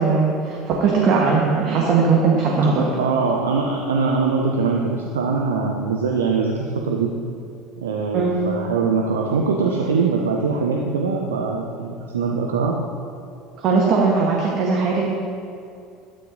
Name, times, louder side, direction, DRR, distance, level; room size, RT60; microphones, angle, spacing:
voice 1, 0.0-2.9 8.1-8.4 13.6-15.1, right 4 dB, 50° right, -2 dB, 1.2 m, -19 dB
voice 2, 3.0-7.1 7.8-12.8, right 4 dB, 75° right, 0 dB, 0.6 m, -22 dB
11.5 x 8.6 x 2.6 m, 2.5 s
figure-of-eight pair, 65°, 0 cm